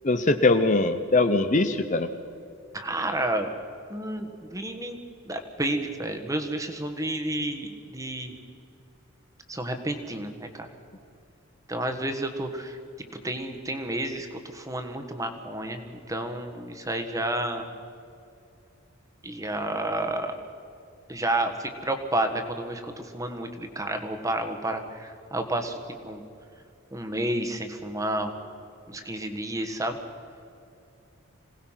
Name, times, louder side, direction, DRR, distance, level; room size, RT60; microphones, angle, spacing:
voice 1, 0.0-2.1, left 2 dB, 35° left, 9 dB, 0.7 m, -22 dB
voice 2, 2.7-3.5 3.9-8.3 9.5-10.7 11.7-17.7 19.2-20.3 21.1-25.8 26.0-26.2 26.9-28.3 28.9-30.0, right 1 dB, 15° right, 6 dB, 1.5 m, -31 dB
26.0 x 18.0 x 5.8 m, 2.6 s
head